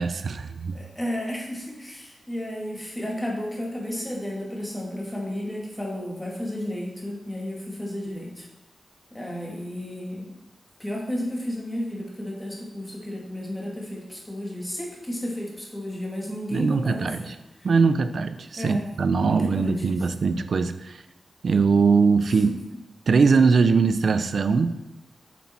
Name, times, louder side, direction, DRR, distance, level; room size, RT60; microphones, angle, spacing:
voice 1, 0.0-0.8 16.5-17.2 17.6-21.0 21.4-22.5 23.1-24.7, right 5 dB, 65° right, 11 dB, 0.6 m, -21 dB
voice 2, 0.7-8.5 9.1-10.3 10.8-17.3 18.6-18.9 19.2-19.9 22.3-22.4, left 1 dB, 5° left, -3 dB, 2.3 m, -33 dB
8.7 x 7.1 x 4.5 m, 0.95 s
wide cardioid pair, 145°, 0 cm